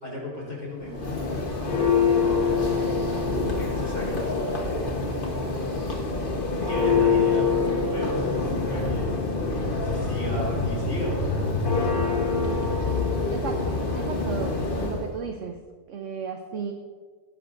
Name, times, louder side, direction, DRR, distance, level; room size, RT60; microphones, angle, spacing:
voice 1, 0.0-1.5 2.0-2.7 3.6-5.0 6.7-8.3 8.7-9.2 9.8-12.0, equal, 50° left, -5 dB, 4.4 m, -36 dB
Church bell, 0.8-15.1, left 4 dB, 35° left, 1.2 m, -25 dB
voice 2, 13.3-15.5 15.9-16.7, right 6 dB, 55° right, 5 dB, 0.9 m, -34 dB
18.5 x 10.5 x 2.6 m, 1.5 s
omnidirectional pair, 1.8 m